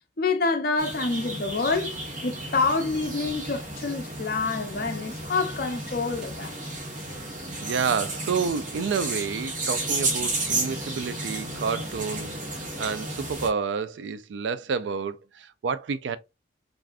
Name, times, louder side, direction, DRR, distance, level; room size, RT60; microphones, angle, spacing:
voice 1, 0.2-6.6, left 4 dB, 50° left, 0.5 m, -27 dB
sound 1, 0.8-13.5, right 2 dB, 45° right, 1.0 m, -33 dB
voice 2, 7.6-16.2, right 5 dB, 75° right, 0.3 m, -29 dB
3.4 x 2.5 x 2.3 m
head